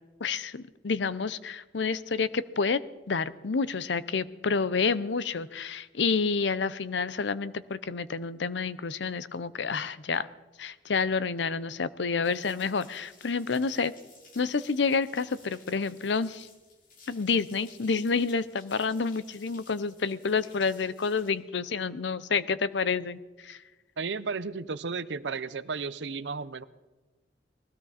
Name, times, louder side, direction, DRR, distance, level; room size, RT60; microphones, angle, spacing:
voice 1, 0.2-2.8 3.1-10.3 10.6-13.9 14.4-16.5 17.1-23.6, left 5 dB, 80° left, 16 dB, 0.7 m, -29 dB
sound 1, 12.2-21.3, left 4 dB, 50° left, 2.9 m, -56 dB
voice 2, 24.0-26.6, right 4 dB, 80° right, 15 dB, 0.7 m, -33 dB
20.0 x 16.0 x 4.2 m, 1.2 s
head